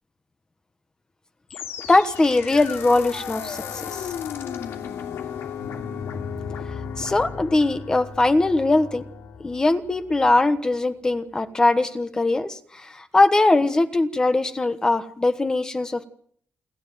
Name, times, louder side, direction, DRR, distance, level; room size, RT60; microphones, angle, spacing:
sound 1, 1.5-10.6, left 7 dB, 80° left, 2.9 m, -35 dB
voice 1, 1.9-4.1 7.0-9.0 9.4-16.0, left 2 dB, 15° left, 10 dB, 1.3 m, -21 dB
28.5 x 11.5 x 9.2 m, 0.62 s
cardioid pair, 150°, 4 cm